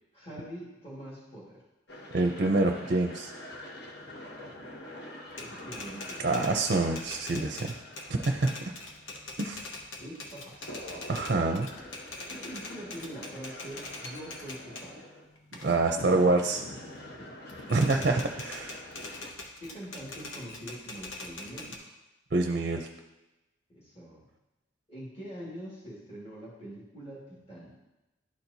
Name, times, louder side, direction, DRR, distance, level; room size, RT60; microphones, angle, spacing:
voice 1, 0.1-1.6 5.4-6.6 10.0-11.3 12.3-15.1 15.8-16.0 17.2-17.4 19.6-21.9 23.7-24.2 24.9-27.8, equal, 30° left, -8 dB, 1.9 m, -44 dB
sound 1, 1.9-19.3, left 1 dB, 55° left, 0.9 m, -46 dB
voice 2, 2.1-3.3 6.2-7.7 8.1-8.5 9.4-9.7 11.1-11.7 15.6-16.6 17.7-18.8 22.3-22.9, right 2 dB, 50° right, 4 dB, 0.5 m, -26 dB
Typewriter, 5.3-14.9 15.4-17.1 17.5-21.8, left 2 dB, 85° left, 1.0 m, -43 dB
12.0 x 4.4 x 2.7 m, 1.0 s
head